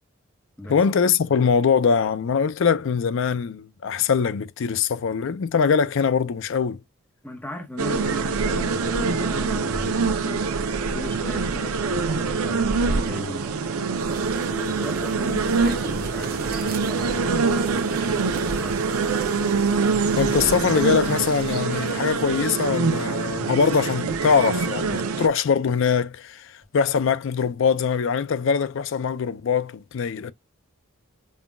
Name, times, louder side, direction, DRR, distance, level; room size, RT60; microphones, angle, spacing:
voice 1, 0.7-6.8 15.3-15.4 20.2-30.3, left 6 dB, 60° left, 0.4 m, -22 dB
voice 2, 7.2-10.5 10.9-13.4 14.4-18.8, left 1 dB, 10° left, 0.8 m, -37 dB
sound 1, 7.8-25.3, right 4 dB, 90° right, 0.6 m, -25 dB
sound 2, 14.0-21.6, right 3 dB, 45° right, 0.8 m, -37 dB
5.5 x 2.2 x 2.3 m
head